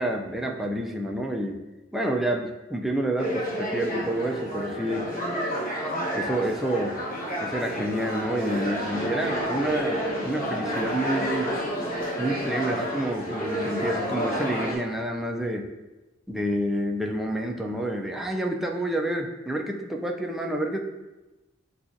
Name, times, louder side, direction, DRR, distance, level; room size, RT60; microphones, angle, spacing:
voice 1, 0.0-1.6 1.9-5.1 6.1-7.0 7.4-11.5 12.2-15.7 16.3-20.8, right 1 dB, ahead, 0 dB, 0.3 m, -28 dB
sound 1, 3.2-14.8, equal, 40° left, 1.1 m, -30 dB
sound 2, 8.3-13.5, equal, 90° left, 0.8 m, -41 dB
6.9 x 2.4 x 2.5 m, 1.1 s
head